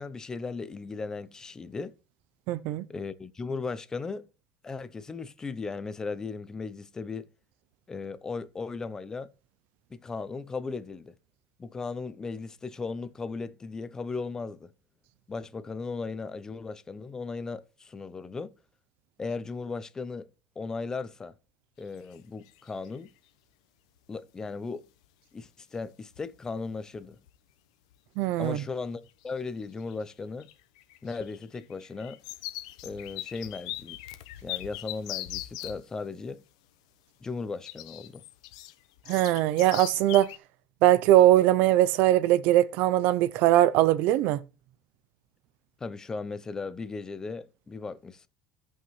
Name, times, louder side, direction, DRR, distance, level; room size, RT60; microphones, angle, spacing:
voice 1, 0.0-1.9 2.9-4.3 4.6-7.3 7.9-9.3 9.9-11.1 11.6-14.7 15.3-18.5 19.2-20.3 20.6-21.3 21.8-23.1 24.1-24.9 25.3-27.2 28.4-30.5 31.0-32.2 32.8-34.0 34.4-36.4 37.2-38.2 45.8-48.3, left 4 dB, 20° left, 0.7 m, -37 dB
voice 2, 2.5-2.9 28.2-28.6 39.1-40.3 40.8-44.4, right 14 dB, 65° right, 0.5 m, -21 dB
sound 1, 21.9-22.2 22.5-23.1 25.0-25.1 25.8-25.9 26.1-26.5 26.8-27.4 27.9-28.0 29.1-29.5 29.8-35.8 37.6-40.4, left 15 dB, 90° left, 0.9 m, -40 dB
16.5 x 5.7 x 3.1 m
supercardioid pair, 125°, 3 cm